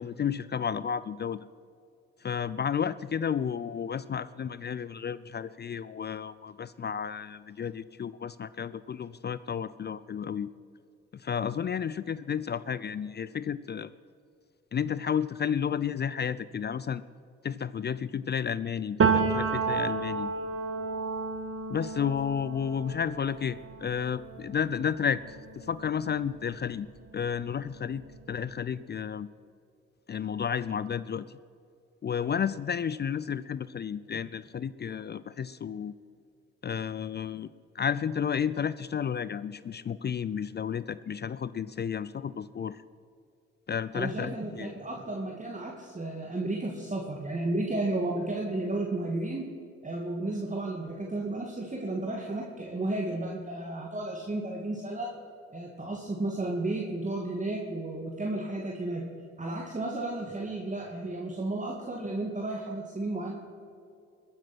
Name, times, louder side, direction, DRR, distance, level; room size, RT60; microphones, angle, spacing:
voice 1, 0.0-1.5 2.2-10.5 11.1-13.9 14.7-17.0 17.4-20.3 21.7-26.9 27.1-28.0 28.3-29.3 30.1-31.4 32.0-35.9 36.6-42.8 43.7-44.7, left 7 dB, 30° left, 17 dB, 0.5 m, -32 dB
Piano, 19.0-26.6 27.0-28.5, right 5 dB, 45° right, 1.7 m, -32 dB
voice 2, 43.9-49.5 49.8-55.1 55.5-59.0 59.4-63.3, right 2 dB, 25° right, 0 dB, 2.2 m, -33 dB
21.5 x 8.0 x 6.0 m, 2.5 s
hypercardioid pair, 50°, 32 cm